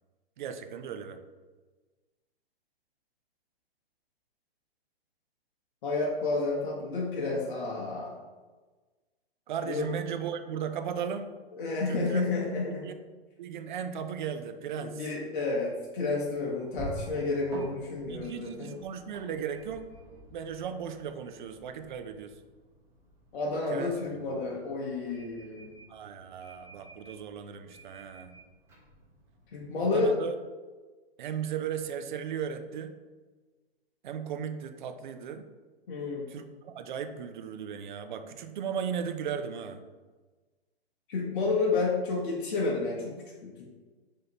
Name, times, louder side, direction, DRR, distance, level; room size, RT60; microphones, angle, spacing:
voice 1, 0.4-1.2 9.5-11.3 11.9-12.2 12.7-12.9 13.4-15.1 18.1-19.9 20.3-22.3 23.7-23.9 25.9-28.3 29.8-30.3 31.2-32.9 34.0-35.5 36.3-39.8, right 7 dB, 50° right, 8 dB, 0.4 m, -36 dB
voice 2, 5.8-8.2 9.7-9.9 11.5-12.9 14.8-18.7 23.3-25.7 29.5-30.1 35.9-36.2 41.1-43.7, left 3 dB, 55° left, -2 dB, 0.8 m, -30 dB
sound 1, 15.8-29.9, equal, 10° right, 1.1 m, -48 dB
4.9 x 2.8 x 2.9 m, 1.3 s
hypercardioid pair, 130°, 31 cm